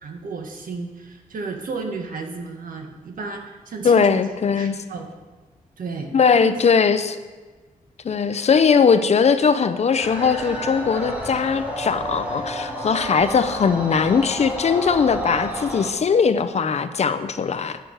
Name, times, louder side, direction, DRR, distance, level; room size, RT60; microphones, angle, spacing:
voice 1, 0.0-4.1 4.6-5.1 5.8-6.5, right 4 dB, 70° right, 3 dB, 1.5 m, -33 dB
voice 2, 3.8-4.8 6.1-7.2 8.0-17.8, left 6 dB, 50° left, 11 dB, 0.6 m, -19 dB
sound 1, 10.0-15.9, equal, 10° right, 1.7 m, -30 dB
10.5 x 6.8 x 6.4 m, 1.3 s
wide cardioid pair, 145°, 15 cm